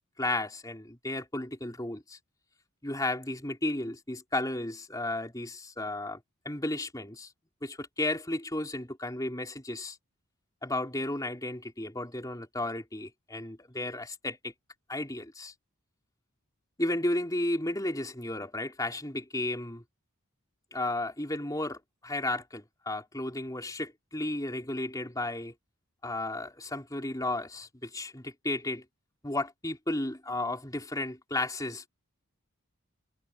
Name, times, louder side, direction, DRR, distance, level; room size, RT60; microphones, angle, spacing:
voice 1, 0.2-2.2 2.8-6.2 6.4-7.3 7.6-10.0 10.6-14.5 14.9-15.5 16.8-19.8 20.7-25.5 26.0-28.8 29.2-31.8, left 1 dB, 15° left, 4.4 m, -33 dB
head